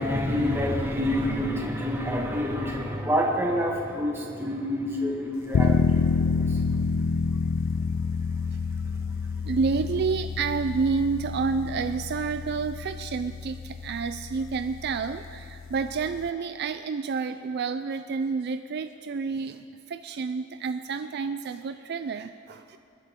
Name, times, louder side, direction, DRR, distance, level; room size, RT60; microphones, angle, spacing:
voice 1, 0.0-6.6, left 1 dB, 10° right, -2 dB, 1.9 m, -27 dB
sound 1, 5.5-16.3, left 5 dB, 75° left, 0.4 m, -28 dB
voice 2, 9.5-22.8, right 5 dB, 55° right, 10 dB, 0.4 m, -29 dB
28.0 x 9.8 x 3.7 m, 2.5 s
head